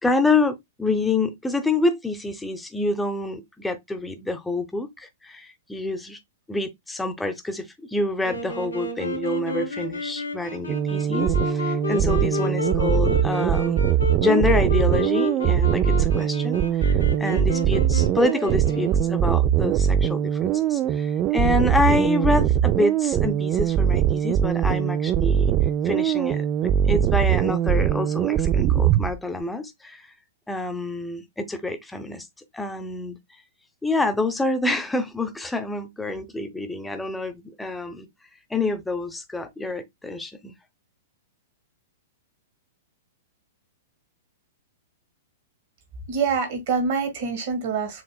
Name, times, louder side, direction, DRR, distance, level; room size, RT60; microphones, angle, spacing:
voice 1, 0.0-6.2 6.5-13.8 14.2-25.5 25.8-26.5 26.8-30.0 30.5-32.3 32.5-33.2 33.8-38.1 38.5-40.5, left 2 dB, 5° left, 0.7 m, -27 dB
Wind instrument woodwind instrument, 8.2-19.3, left 4 dB, 80° left, 1.4 m, -31 dB
sound 1, 10.7-29.2, right 10 dB, 30° right, 0.3 m, -22 dB
voice 2, 46.1-48.0, right 5 dB, 50° right, 2.0 m, -25 dB
7.0 x 2.9 x 2.3 m
figure-of-eight pair, 105°, 0 cm